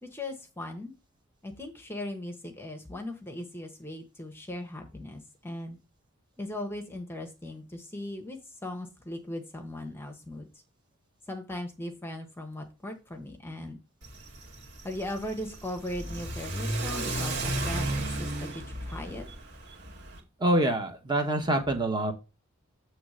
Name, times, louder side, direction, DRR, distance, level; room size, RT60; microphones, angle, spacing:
voice 1, 0.0-0.9 1.4-5.8 6.4-10.5 11.3-13.8 14.8-19.3, left 1 dB, 10° left, 4 dB, 1.0 m, -38 dB
Car / Accelerating revving vroom, 14.0-20.2, right 1 dB, 55° right, 2.0 m, -34 dB
voice 2, 20.4-22.1, right 1 dB, 20° right, 4 dB, 1.0 m, -26 dB
7.8 x 3.2 x 6.3 m, 0.29 s
head